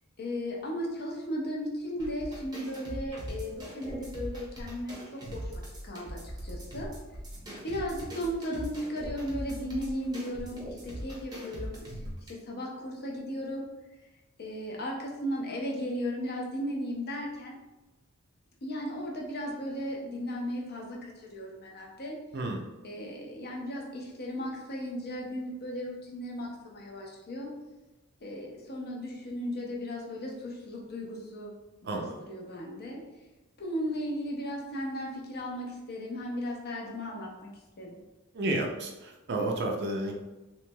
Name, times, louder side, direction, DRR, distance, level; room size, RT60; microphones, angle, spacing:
voice 1, 0.2-6.9 7.6-11.7 12.3-13.6 14.4-17.6 18.6-22.2 22.8-27.5 28.2-31.5 31.8-32.0 32.3-33.0 33.6-37.3 37.8-38.0, equal, 45° left, -1 dB, 0.7 m, -36 dB
sound 1, 2.0-12.3, equal, 20° right, 0.7 m, -41 dB
voice 2, 31.8-32.2 38.3-40.1, right 2 dB, 50° right, 1 dB, 0.5 m, -31 dB
3.1 x 3.0 x 2.2 m, 1.1 s
head